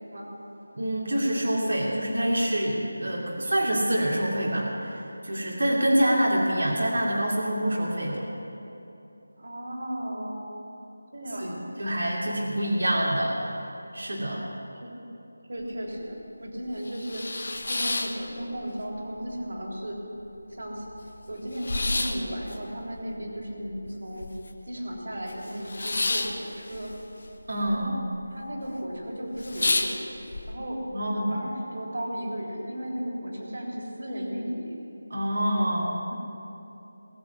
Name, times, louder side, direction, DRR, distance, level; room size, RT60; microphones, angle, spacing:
voice 1, 0.7-8.3 11.4-13.6 13.9-14.4 27.5-27.9 30.9-31.3 35.1-36.1, right 1 dB, 90° right, -3 dB, 2.8 m, -26 dB
voice 2, 9.4-10.5 11.1-11.7 14.3-14.5 14.7-14.9 15.5-17.3 17.7-20.0 20.5-20.8 21.3-24.3 24.7-26.9 27.7-27.9 28.3-30.1 30.5-34.8, equal, 60° right, -2 dB, 3.6 m, -35 dB
sound 1, 15.6-15.7 16.1-16.2 16.7-18.9 19.2-19.9 20.3-20.4 20.5-24.7 25.0-27.8 28.0-28.6 28.9-29.0 29.3-30.4, left 2 dB, 55° left, 1.2 m, -31 dB
20.0 x 7.4 x 8.3 m, 3.0 s
figure-of-eight pair, 175°, 0 cm